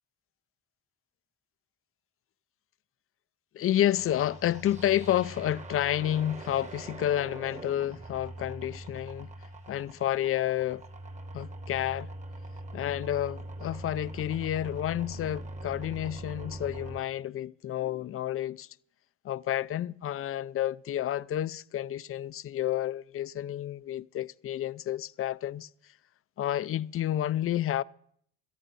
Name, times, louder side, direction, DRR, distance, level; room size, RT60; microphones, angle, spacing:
voice 1, 3.5-9.3 9.7-10.8 11.3-12.1 12.7-18.7 19.2-25.7 26.4-27.8, left 12 dB, 45° left, 0.5 m, -30 dB
sound 1, 4.0-17.0, right 1 dB, 25° right, 1.2 m, -42 dB
18.0 x 13.5 x 4.0 m
cardioid pair, 90°, 30 cm